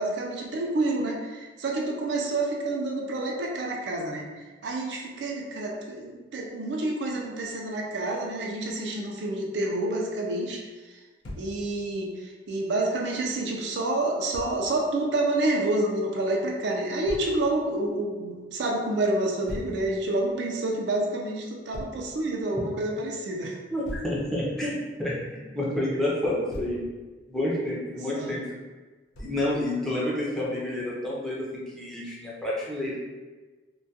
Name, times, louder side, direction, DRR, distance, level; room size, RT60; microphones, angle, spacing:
voice 1, 0.0-10.6 11.4-23.6 28.1-28.4, right 2 dB, 70° right, 0 dB, 0.4 m, -28 dB
Thump thud, 11.2-11.5 14.3-14.5 17.1-17.3 19.5-19.8 21.7-22.0 23.8-24.2 26.2-26.8 29.1-29.5, left 1 dB, 80° left, 0.5 m, -38 dB
voice 2, 23.7-26.8 27.3-28.4 29.2-31.5 31.7-33.0, left 1 dB, 5° left, -7 dB, 0.5 m, -29 dB
2.2 x 2.2 x 2.7 m, 1.3 s
head